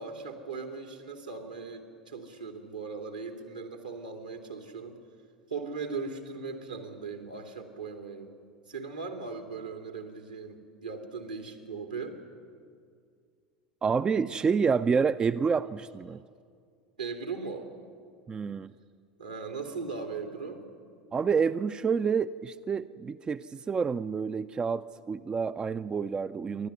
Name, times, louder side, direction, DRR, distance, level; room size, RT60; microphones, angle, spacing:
voice 1, 0.0-5.0 5.5-8.3 8.7-12.2 16.1-16.2 17.0-17.7 19.2-20.6, right 4 dB, 80° right, 4 dB, 2.7 m, -38 dB
voice 2, 13.8-16.2 18.3-18.7 21.1-26.7, right 5 dB, 20° right, 13 dB, 0.5 m, -28 dB
29.0 x 12.0 x 9.5 m, 2.2 s
figure-of-eight pair, 75°, 4 cm